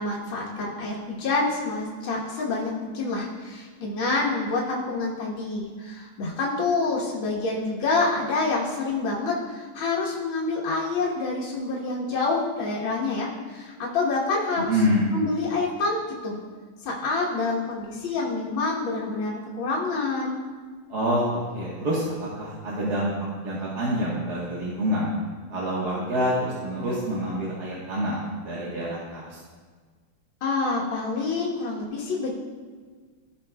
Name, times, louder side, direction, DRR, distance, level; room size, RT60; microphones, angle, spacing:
voice 1, 0.0-14.8 15.1-16.4 16.8-20.5 30.4-32.3, left 3 dB, 70° left, -6 dB, 2.0 m, -27 dB
voice 2, 14.6-15.1 20.9-22.0 22.4-23.1 23.4-25.1 25.5-29.4, equal, 50° right, -7 dB, 1.7 m, -27 dB
16.0 x 6.1 x 2.2 m, 1.5 s
omnidirectional pair, 2.3 m